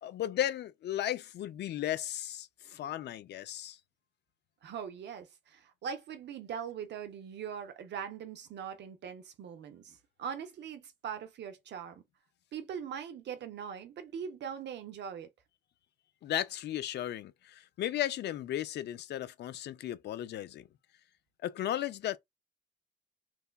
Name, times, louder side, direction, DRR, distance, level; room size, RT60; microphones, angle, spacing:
voice 1, 0.0-3.8 16.2-20.7 21.4-22.2, left 12 dB, 60° left, 0.4 m, -35 dB
voice 2, 4.6-12.0 12.5-15.3, right 7 dB, 60° right, 0.5 m, -41 dB
2.9 x 2.1 x 2.2 m
cardioid pair, 90°, 20 cm